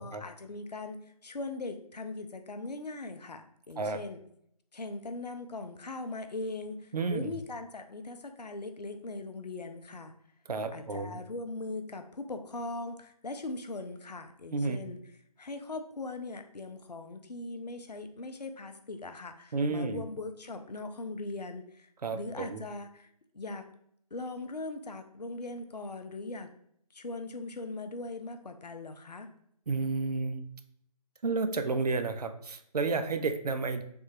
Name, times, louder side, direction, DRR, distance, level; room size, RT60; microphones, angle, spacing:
voice 1, 0.0-4.2 4.7-10.1 10.7-15.0 15.4-23.7 24.1-26.5 26.9-29.3, left 2 dB, 85° left, 7 dB, 0.5 m, -40 dB
voice 2, 6.9-7.3 10.5-11.2 14.5-14.8 19.5-20.1 22.0-22.6 29.7-30.5 31.2-33.8, right 3 dB, 75° right, 8 dB, 0.4 m, -31 dB
3.3 x 2.2 x 3.0 m, 0.70 s
figure-of-eight pair, 150°, 20 cm